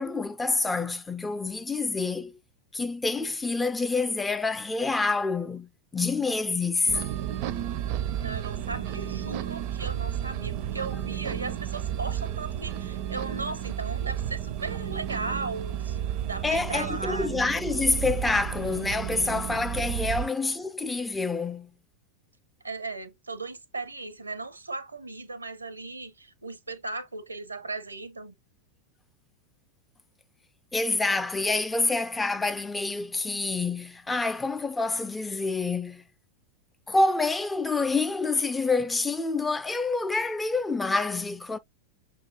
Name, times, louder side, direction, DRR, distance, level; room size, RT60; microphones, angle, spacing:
voice 1, 0.0-2.4 2.7-7.0 16.4-21.7 30.7-36.0 36.9-41.6, left 3 dB, 10° left, 0.4 m, -27 dB
sound 1, 6.9-20.3, right 10 dB, 45° right, 0.5 m, -32 dB
voice 2, 8.2-17.3 20.0-20.3 22.6-28.3, right 3 dB, 80° right, 0.7 m, -37 dB
6.3 x 2.5 x 2.8 m
figure-of-eight pair, 90°, 0 cm